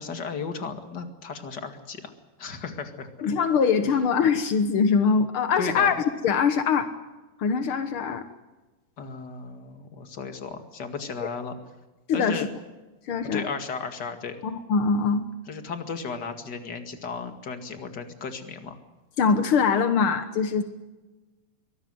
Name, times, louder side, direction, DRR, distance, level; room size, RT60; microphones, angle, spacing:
voice 1, 0.0-2.1 2.4-3.3 5.6-5.9 9.0-11.6 12.1-12.5 13.2-14.4 15.5-18.8, left 5 dB, 35° left, 7 dB, 2.0 m, -35 dB
voice 2, 3.2-5.9 6.2-6.9 7.4-8.2 11.2-11.3 12.1-12.5 13.1-13.5 14.4-15.2 19.2-20.6, left 5 dB, 75° left, 9 dB, 1.2 m, -23 dB
24.0 x 18.5 x 7.8 m, 1.2 s
omnidirectional pair, 4.2 m